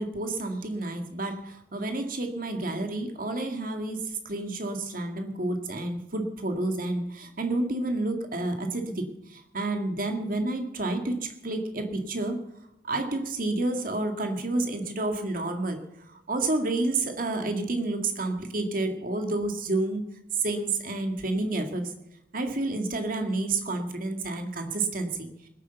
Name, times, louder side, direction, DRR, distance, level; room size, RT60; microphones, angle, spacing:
voice 1, 0.0-9.0 9.3-12.4 12.8-15.8 16.3-20.0 20.4-21.9 22.3-25.3, right 2 dB, 45° right, 5 dB, 2.0 m, -29 dB
20.0 x 8.5 x 6.9 m, 0.80 s
head